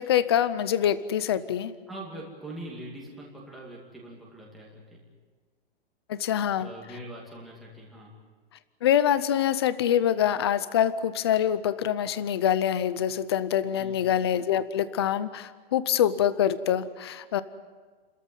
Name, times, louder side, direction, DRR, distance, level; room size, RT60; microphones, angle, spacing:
voice 1, 0.0-1.7 6.1-6.7 8.8-17.4, left 10 dB, 25° left, 15 dB, 0.6 m, -25 dB
voice 2, 1.9-5.0 6.6-8.1 13.8-14.1, right 1 dB, ahead, -5 dB, 2.4 m, -42 dB
30.0 x 14.0 x 9.3 m, 1.5 s
hypercardioid pair, 180°, 31 cm